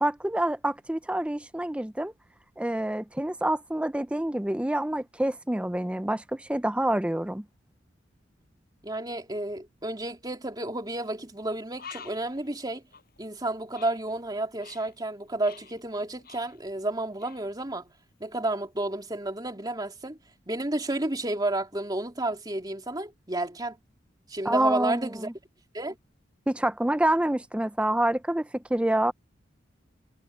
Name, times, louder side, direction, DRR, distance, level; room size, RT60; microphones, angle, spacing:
voice 1, 0.0-2.1 2.6-7.4 24.4-25.3 26.5-29.1, right 1 dB, 5° right, 0.5 m, -27 dB
voice 2, 8.8-12.8 13.2-17.9 18.2-20.2 20.5-23.8 24.3-25.3 25.7-26.0, right 2 dB, 20° right, 3.1 m, -31 dB
Bird, 10.9-11.1 11.4-11.5 11.8-15.0 15.2-16.9 17.2-17.5, left 6 dB, 55° left, 6.7 m, -48 dB
head